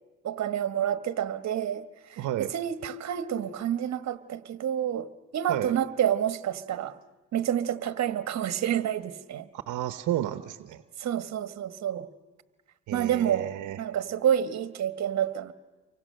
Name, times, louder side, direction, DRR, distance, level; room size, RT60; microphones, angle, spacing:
voice 1, 0.2-2.2 2.5-7.0 7.3-9.5 11.0-12.1 12.9-15.5, right 10 dB, 60° right, 1.2 m, -29 dB
voice 2, 2.2-2.5 5.5-5.8 9.5-10.8 12.9-13.8, right 13 dB, 80° right, 0.9 m, -32 dB
29.0 x 24.5 x 6.5 m
cardioid pair, 90°, 30 cm